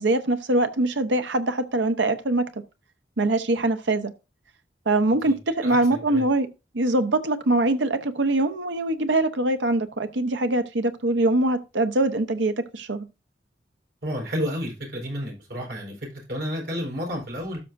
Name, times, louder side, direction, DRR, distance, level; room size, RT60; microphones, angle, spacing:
voice 1, 0.0-2.5 3.2-4.1 4.9-6.5 6.7-13.1, right 2 dB, 85° right, 1.0 m, -23 dB
voice 2, 5.2-6.2 14.0-17.6, equal, 60° right, 4.4 m, -31 dB
12.5 x 5.9 x 2.6 m
head